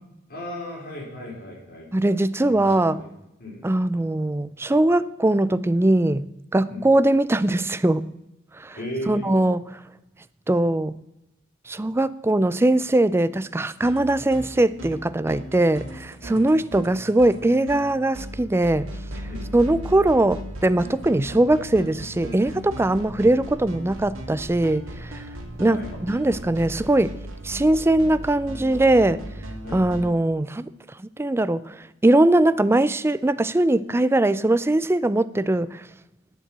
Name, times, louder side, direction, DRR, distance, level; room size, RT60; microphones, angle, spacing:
voice 1, 0.3-1.9 2.5-3.1 3.4-3.6 6.6-6.9 8.7-9.4 16.3-16.5 19.3-19.5 25.6-25.9 29.6-29.8, left 1 dB, 45° left, 4.7 m, -36 dB
voice 2, 1.9-3.0 3.6-6.3 6.5-8.1 8.6-8.8 9.1-9.8 10.5-11.0 11.7-18.9 19.5-25.2 25.6-25.8 26.1-27.1 27.4-29.2 29.7-30.7 31.0-35.8, right 1 dB, 10° right, 0.3 m, -21 dB
sound 1, 13.7-30.1, right 1 dB, 70° right, 2.0 m, -37 dB
9.9 x 8.0 x 7.4 m
head